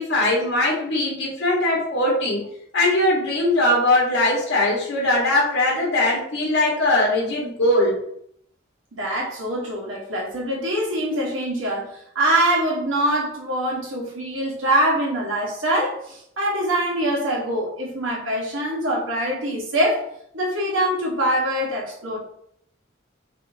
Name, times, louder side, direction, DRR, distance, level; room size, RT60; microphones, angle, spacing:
voice 1, 0.0-2.4 2.7-8.0, left 1 dB, 75° left, -5 dB, 1.2 m, -20 dB
voice 2, 8.9-20.1 20.3-22.2, right 1 dB, 90° right, -3 dB, 1.2 m, -24 dB
3.7 x 3.5 x 2.6 m, 0.71 s
head